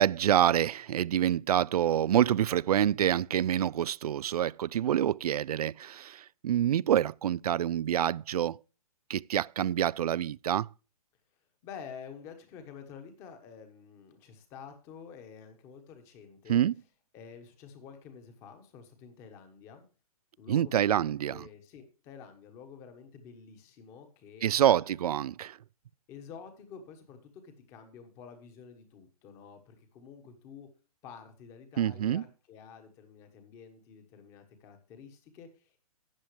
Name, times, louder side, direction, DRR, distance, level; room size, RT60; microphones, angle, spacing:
voice 1, 0.0-8.6 9.1-10.7 16.5-16.7 20.5-21.4 24.4-25.6 31.8-32.2, right 10 dB, 80° right, 0.4 m, -27 dB
voice 2, 11.6-16.6 17.1-19.8 20.4-25.0 26.1-30.7 31.0-35.8, left 6 dB, 15° left, 1.2 m, -49 dB
13.0 x 9.0 x 3.2 m
hypercardioid pair, 180°, 19 cm